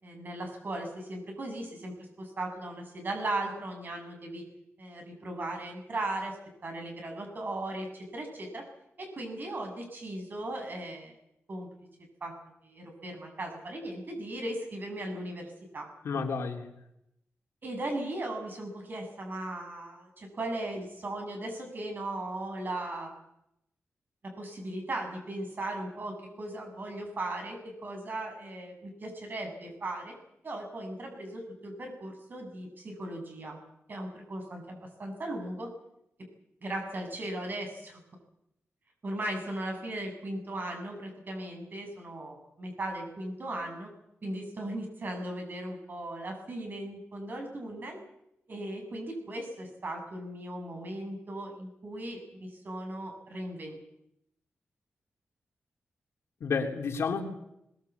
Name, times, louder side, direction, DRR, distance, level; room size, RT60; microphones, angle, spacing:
voice 1, 0.0-4.4 4.8-6.4 6.6-8.6 9.0-11.1 11.5-11.7 12.2-12.3 12.6-15.9 17.6-23.1 24.4-30.1 30.4-33.6 33.9-35.7 36.6-38.0 39.0-43.9 44.2-48.0 48.5-53.8, right 1 dB, 45° right, 3 dB, 7.6 m, -37 dB
voice 2, 16.0-16.7 56.4-57.2, left 5 dB, 80° left, 2 dB, 3.5 m, -30 dB
22.0 x 20.0 x 8.4 m, 0.81 s
wide cardioid pair, 110°, 4 cm